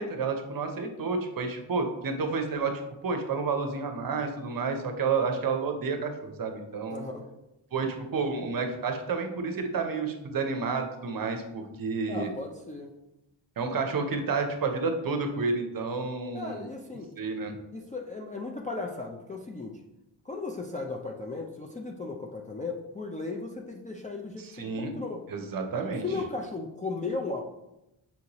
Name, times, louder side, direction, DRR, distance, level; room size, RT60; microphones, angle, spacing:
voice 1, 0.0-2.7 3.0-7.0 7.7-12.3 13.6-16.7 17.2-17.6 24.4-24.9 25.3-26.0, right 4 dB, 45° right, 5 dB, 0.7 m, -30 dB
voice 2, 6.9-7.3 12.1-12.9 16.3-17.1 17.7-19.8 20.2-25.2 26.0-27.4, left 3 dB, 15° left, 0 dB, 0.4 m, -36 dB
5.7 x 2.6 x 2.9 m, 0.91 s
cardioid pair, 75°, 49 cm